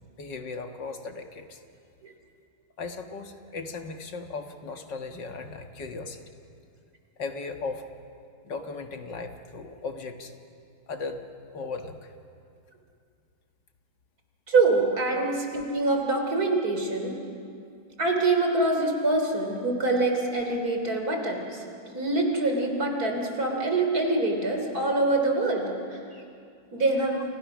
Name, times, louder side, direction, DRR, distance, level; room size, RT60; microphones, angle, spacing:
voice 1, 0.2-1.6 2.8-6.3 7.2-7.8 8.4-10.3 10.9-11.2 11.5-12.1, left 4 dB, 65° left, 5 dB, 2.2 m, -37 dB
voice 2, 14.5-17.2 18.0-21.6 21.9-26.2 26.7-27.2, right 2 dB, 50° right, 3 dB, 3.9 m, -25 dB
29.5 x 29.5 x 6.3 m, 2.4 s
omnidirectional pair, 2.1 m